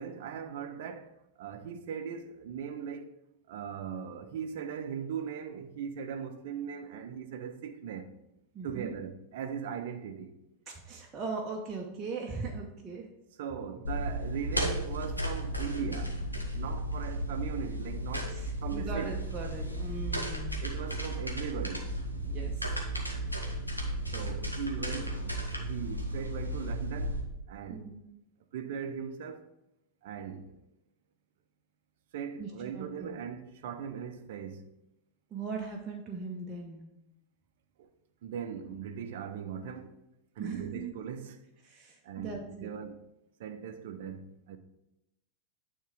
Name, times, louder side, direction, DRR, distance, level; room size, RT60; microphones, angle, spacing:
voice 1, 0.0-3.1 3.5-8.2 8.6-10.4 13.4-16.2 16.5-19.2 20.6-22.0 24.1-27.9 28.5-29.5 30.0-30.6 32.1-34.7 37.8-37.9 38.2-40.0 40.4-41.4 42.0-43.0 43.4-44.6, right 7 dB, 55° right, 0.7 m, -39 dB
voice 2, 8.5-8.9 10.7-13.1 18.3-20.6 22.2-22.7 24.1-24.2 27.7-28.0 32.4-33.1 35.3-36.8 40.4-40.9 41.6-42.7, right 4 dB, 25° right, 0.9 m, -39 dB
sound 1, 13.8-27.2, right 1 dB, 90° left, 1.0 m, -34 dB
9.2 x 3.7 x 4.9 m
figure-of-eight pair, 90°, 0 cm